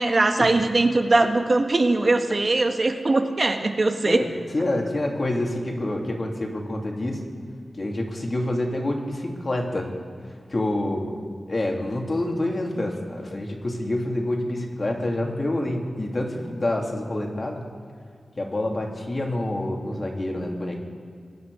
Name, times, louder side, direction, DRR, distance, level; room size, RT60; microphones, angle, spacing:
voice 1, 0.0-4.3, right 2 dB, 50° right, 5 dB, 1.4 m, -21 dB
voice 2, 4.5-7.2 7.8-9.9 10.2-11.2 11.5-17.7 18.4-20.8, left 1 dB, 45° left, 1 dB, 2.7 m, -27 dB
22.5 x 9.6 x 4.9 m, 2.2 s
cardioid pair, 50°, 0 cm